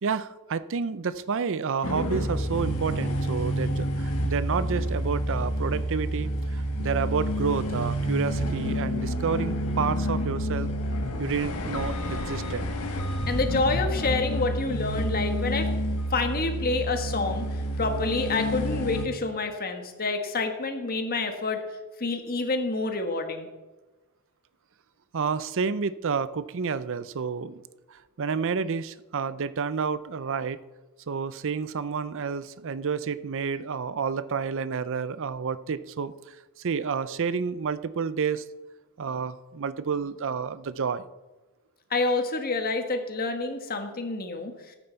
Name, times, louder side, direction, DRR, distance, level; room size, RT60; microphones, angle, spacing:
voice 1, 0.0-10.7 11.2-12.7 25.1-27.6 27.9-30.6 31.1-38.5 39.0-41.0, right 5 dB, 60° right, 15 dB, 0.5 m, -30 dB
sound 1, 1.8-19.1, equal, 85° left, 1.4 m, -29 dB
voice 2, 13.3-15.7 16.1-17.4 17.8-21.6 22.0-23.5 41.9-44.5, left 3 dB, 45° left, 5 dB, 1.4 m, -28 dB
13.5 x 9.0 x 4.5 m, 1.2 s
head